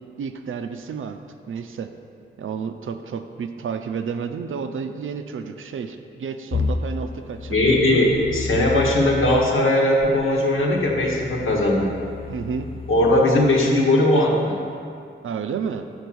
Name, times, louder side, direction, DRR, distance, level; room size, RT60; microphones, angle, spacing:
voice 1, 0.2-1.2 1.5-1.9 2.4-7.7 12.3-12.7 15.2-15.9, right 6 dB, 80° right, 8 dB, 0.5 m, -31 dB
sound 1, 6.5-9.4 10.0-13.2, left 4 dB, 30° left, 0.4 m, -31 dB
voice 2, 7.5-11.9 12.9-14.6, left 1 dB, 80° left, -2 dB, 1.3 m, -19 dB
6.9 x 4.5 x 6.1 m, 2.4 s
cardioid pair, 65°, 21 cm